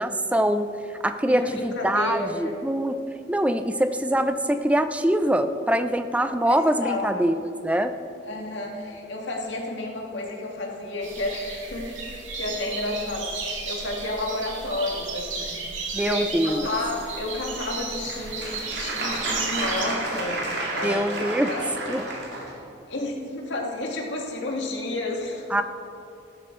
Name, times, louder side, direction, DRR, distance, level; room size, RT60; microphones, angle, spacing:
voice 1, 0.0-3.0 3.3-7.3 7.6-7.9 15.9-16.7 20.8-21.5 21.9-22.0 25.5-25.6, right 1 dB, 5° right, 10 dB, 0.4 m, -24 dB
voice 2, 1.2-2.6 6.5-7.2 8.2-12.0 12.4-20.4 20.7-22.0 22.5-22.6 22.9-25.4, left 2 dB, 70° left, -1 dB, 2.0 m, -31 dB
sound 1, 11.0-19.9, right 4 dB, 80° right, 2.0 m, -34 dB
Applause, 17.7-22.5, right 2 dB, 60° right, 2.3 m, -31 dB
15.0 x 12.0 x 3.8 m, 2.7 s
head